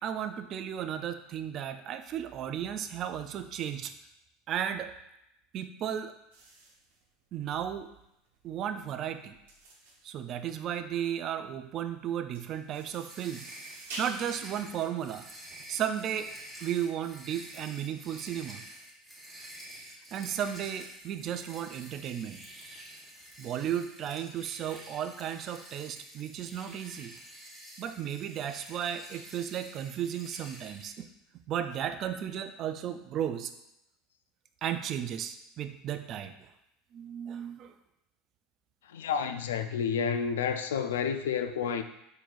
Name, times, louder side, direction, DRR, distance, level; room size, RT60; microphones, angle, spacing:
voice 1, 0.0-3.9 4.5-4.9 5.5-6.1 7.3-7.9 8.4-9.4 10.0-13.4 14.0-15.2 15.7-16.3 16.6-18.6 20.1-22.4 23.4-27.2 27.8-31.1 31.5-33.5 34.6-36.5 36.9-37.7, right 9 dB, 45° right, 9 dB, 0.3 m, -34 dB
sound 1, 6.3-15.9, right 2 dB, 80° right, 1.0 m, -48 dB
sound 2, 13.1-30.9, right 1 dB, 5° right, 1.2 m, -49 dB
voice 2, 38.9-41.8, left 7 dB, 85° left, 8 dB, 0.3 m, -30 dB
4.5 x 3.8 x 2.4 m, 0.83 s
hypercardioid pair, 95°, 0 cm